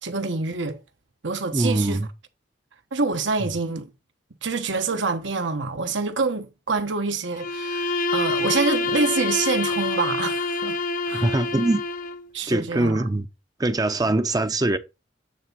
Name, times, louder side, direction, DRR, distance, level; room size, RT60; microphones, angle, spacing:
voice 1, 0.0-0.8 1.2-2.0 2.9-3.9 4.4-10.8 11.0-11.3 12.3-13.0, right 4 dB, 80° right, 1.2 m, -26 dB
voice 2, 1.5-2.1 11.1-11.8 12.5-13.3 13.6-14.8, right 2 dB, 20° right, 0.6 m, -22 dB
Bowed string instrument, 7.3-12.3, left 3 dB, 45° left, 0.6 m, -26 dB
9.0 x 3.6 x 5.4 m
head